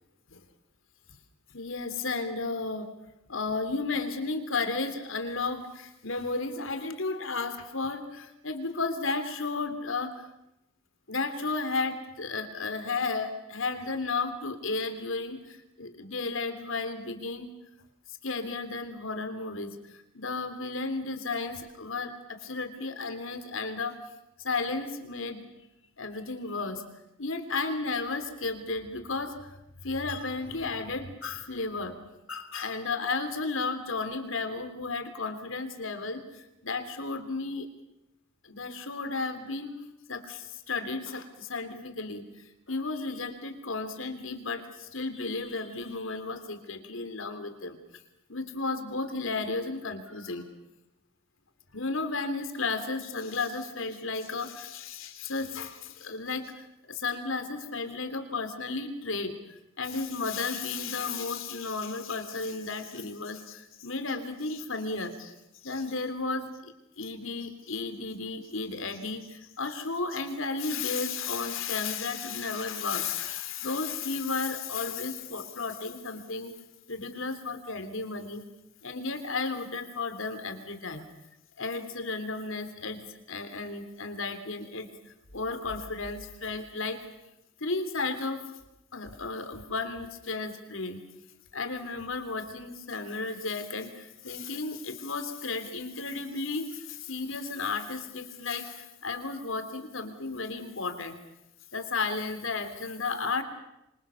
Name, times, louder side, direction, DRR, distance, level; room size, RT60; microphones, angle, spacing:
voice 1, 1.5-2.9 3.3-10.3 11.1-17.5 18.2-24.0 24.4-25.4 26.0-26.8 27.2-29.5 29.8-32.0 32.3-37.7 38.4-39.7 40.1-47.8 48.3-50.5 51.7-59.4 59.8-65.3 65.6-76.5 76.9-78.4 78.8-81.1 81.6-87.0 87.6-88.6 88.9-91.0 91.5-101.2 101.7-103.4, left 3 dB, 65° left, 9 dB, 3.3 m, -33 dB
26.0 x 26.0 x 7.1 m, 0.88 s
head